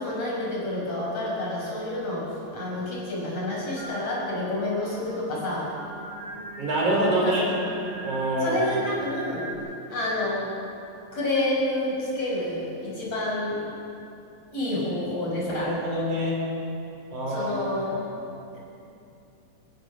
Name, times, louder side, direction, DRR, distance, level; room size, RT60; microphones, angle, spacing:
voice 1, 0.0-2.2 2.5-5.7 7.2-7.3 8.4-9.5 9.9-10.5 11.1-13.6 14.5-15.7 17.3-17.9, left 1 dB, 45° left, -5 dB, 7.0 m, -28 dB
Singing, 3.8-9.5, right 2 dB, 80° right, 6.1 m, -39 dB
voice 2, 6.6-7.4 8.0-8.6 15.6-16.5 17.1-17.6 17.9-18.0, right 1 dB, 60° right, -3 dB, 5.8 m, -25 dB
29.0 x 15.0 x 6.8 m, 2.7 s
omnidirectional pair, 4.0 m